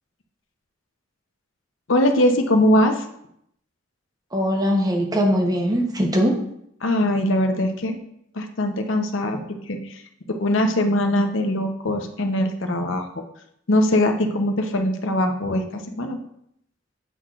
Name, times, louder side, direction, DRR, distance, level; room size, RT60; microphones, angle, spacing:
voice 1, 1.9-3.0 6.8-8.0 8.3-10.0 10.3-13.1 13.7-16.2, left 1 dB, 80° left, 5 dB, 0.8 m, -21 dB
voice 2, 4.3-6.4, equal, 20° right, 1 dB, 0.9 m, -21 dB
8.1 x 5.7 x 2.5 m, 0.74 s
head